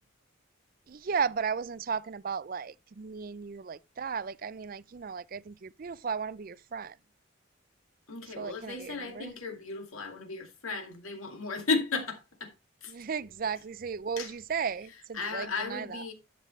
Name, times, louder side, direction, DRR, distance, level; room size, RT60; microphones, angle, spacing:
voice 1, 0.9-6.9 8.4-9.3 12.9-16.0, right 6 dB, 45° right, 0.4 m, -35 dB
voice 2, 8.1-12.5 12.8-12.9 14.2-14.3 15.1-16.1, left 4 dB, 90° left, 2.4 m, -34 dB
11.5 x 6.7 x 3.2 m
head